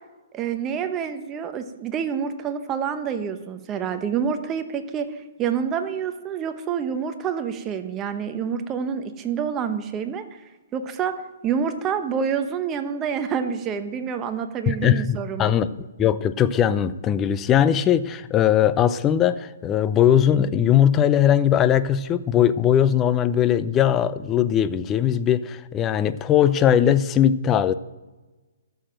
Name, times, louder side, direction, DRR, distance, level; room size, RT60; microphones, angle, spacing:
voice 1, 0.3-10.2 10.7-15.5, right 7 dB, 20° right, 8 dB, 1.0 m, -27 dB
voice 2, 14.7-27.7, left 10 dB, 20° left, 14 dB, 0.5 m, -20 dB
13.0 x 7.0 x 7.6 m, 1.2 s
hypercardioid pair, 145°, 0 cm